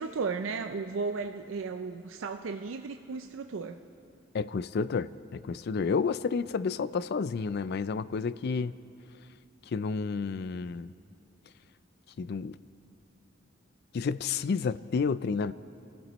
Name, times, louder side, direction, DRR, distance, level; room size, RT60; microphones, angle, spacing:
voice 1, 0.0-3.8, right 4 dB, 80° right, 6 dB, 0.5 m, -35 dB
voice 2, 4.3-8.7 9.7-10.9 12.2-12.6 13.9-15.5, left 5 dB, 55° left, 16 dB, 0.4 m, -30 dB
27.0 x 15.0 x 3.1 m, 2.7 s
head